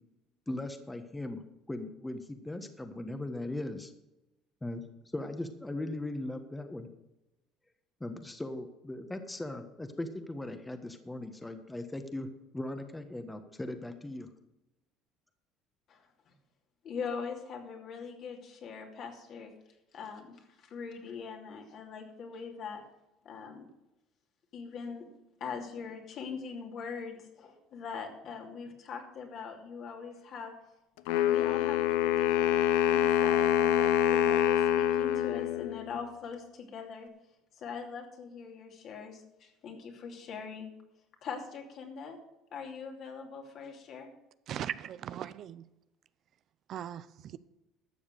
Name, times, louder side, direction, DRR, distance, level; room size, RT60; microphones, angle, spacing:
voice 1, 0.5-1.4 1.7-3.9 4.6-4.8 5.1-6.9 8.0-12.3 12.5-14.3, left 1 dB, 10° left, 8 dB, 1.3 m, -38 dB
voice 2, 16.8-19.5 19.9-22.8 23.2-23.7 24.5-25.1 25.4-30.5 31.1-32.6 32.9-37.1 37.5-40.7 41.2-42.2 42.5-44.1, left 5 dB, 55° left, 2 dB, 2.8 m, -42 dB
Wind instrument woodwind instrument, 31.1-36.1, left 11 dB, 85° left, 0.5 m, -26 dB
voice 3, 44.5-45.6 46.7-47.4, right 10 dB, 55° right, 16 dB, 0.5 m, -39 dB
12.5 x 7.1 x 6.7 m, 0.94 s
supercardioid pair, 85°, 0 cm